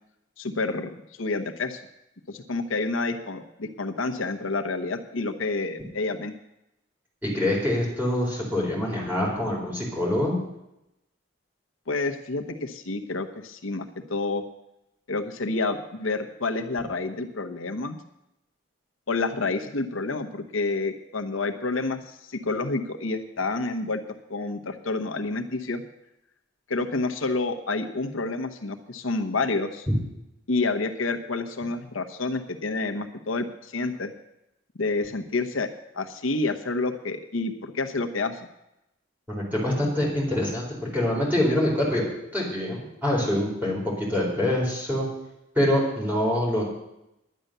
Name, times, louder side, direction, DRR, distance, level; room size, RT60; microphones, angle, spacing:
voice 1, 0.4-0.9 1.2-1.8 2.3-6.3 11.9-14.4 15.1-18.0 19.1-24.0 24.3-25.8 26.7-29.9 30.5-34.1 34.8-38.5, left 3 dB, 85° left, 6 dB, 1.0 m, -29 dB
voice 2, 7.3-10.4 39.4-42.0 42.3-45.1 45.5-46.6, left 1 dB, 10° right, -4 dB, 4.3 m, -25 dB
10.5 x 10.0 x 6.7 m, 0.85 s
head